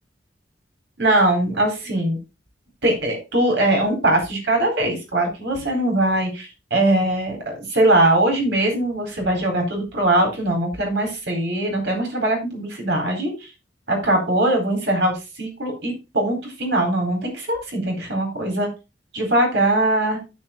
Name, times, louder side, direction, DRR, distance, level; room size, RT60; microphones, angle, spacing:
voice 1, 1.0-2.2 2.8-13.5 13.9-18.7 19.1-20.2, right 1 dB, 65° right, 1 dB, 4.1 m, -21 dB
13.0 x 4.5 x 3.7 m, 0.27 s
head